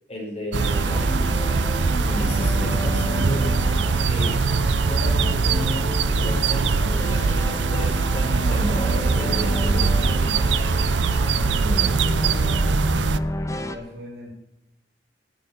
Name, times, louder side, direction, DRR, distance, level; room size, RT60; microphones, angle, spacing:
voice 1, 0.1-1.7 2.2-3.6 4.0-4.4 4.8-10.3, equal, 35° left, -2 dB, 5.4 m, -34 dB
sound 1, 0.5-13.2, right 4 dB, 80° right, 0.5 m, -22 dB
sound 2, 0.6-13.8, left 1 dB, 15° left, 0.9 m, -30 dB
voice 2, 2.1-2.5 8.2-9.5 10.7-14.3, equal, 60° right, -9 dB, 5.6 m, -41 dB
10.0 x 9.2 x 9.0 m, 0.90 s
head